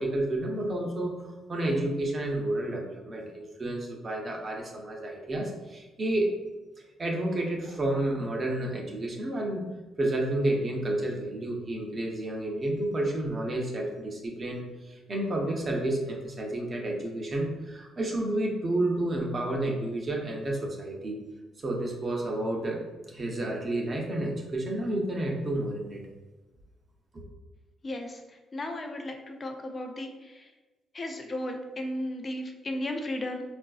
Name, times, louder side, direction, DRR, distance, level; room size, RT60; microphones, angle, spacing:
voice 1, 0.0-6.3 7.0-9.7 10.0-21.2 21.6-26.0 27.1-27.2, right 1 dB, 35° right, 0 dB, 0.7 m, -30 dB
voice 2, 28.5-30.1 30.9-33.4, left 1 dB, 35° left, 4 dB, 0.5 m, -34 dB
3.8 x 2.5 x 2.3 m, 1.2 s
cardioid pair, 90°, 0 cm